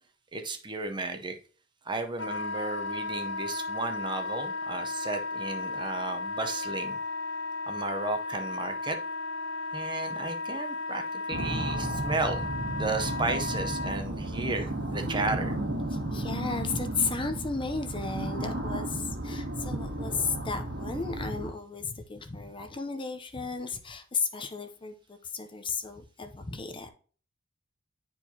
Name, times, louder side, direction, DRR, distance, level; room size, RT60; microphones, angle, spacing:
voice 1, 0.3-1.4 1.8-7.0 7.7-9.0 9.7-12.4 12.7-15.5, right 3 dB, 25° right, 0.7 m, -34 dB
Wind instrument woodwind instrument, 2.2-14.0, left 2 dB, 65° left, 0.7 m, -34 dB
sound 1, 11.3-21.5, right 1 dB, 70° right, 2.1 m, -33 dB
voice 2, 15.9-26.9, left 4 dB, 25° left, 0.6 m, -34 dB
9.8 x 4.6 x 2.8 m
head